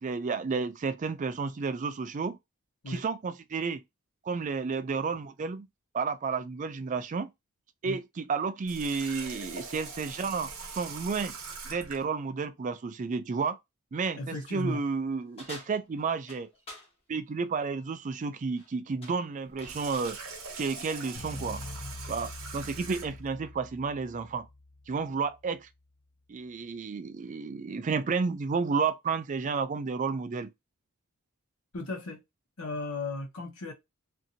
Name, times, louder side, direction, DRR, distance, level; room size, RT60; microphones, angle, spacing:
voice 1, 0.0-2.4 2.9-3.8 4.2-5.7 5.9-7.3 7.8-11.3 11.7-13.6 13.9-16.5 17.1-20.2 20.6-21.6 22.1-24.5 24.9-25.7 26.3-30.5, right 5 dB, 35° right, 0.3 m, -31 dB
Water tap faucet, 8.6-12.0 19.4-23.3, right 4 dB, 70° right, 0.8 m, -42 dB
voice 2, 14.2-14.8 31.7-32.2 32.6-33.7, left 2 dB, 85° left, 0.9 m, -35 dB
sound 1, 15.4-16.9 18.4-18.7 19.0-20.2, left 2 dB, 25° left, 0.9 m, -48 dB
sound 2, 21.1-25.5, left 2 dB, 45° left, 0.5 m, -44 dB
2.6 x 2.6 x 2.7 m
head